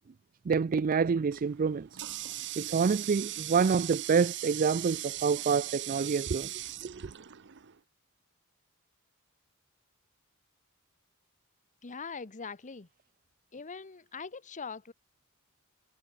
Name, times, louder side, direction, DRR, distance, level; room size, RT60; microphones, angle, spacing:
voice 1, 0.5-1.9 2.6-6.5 6.8-7.0, right 5 dB, 40° right, 0.4 m, -27 dB
Water tap faucet, 1.3-7.8, right 14 dB, 55° right, 0.9 m, -39 dB
voice 2, 11.8-12.9 13.5-14.9, left 5 dB, 35° left, 0.9 m, -42 dB
head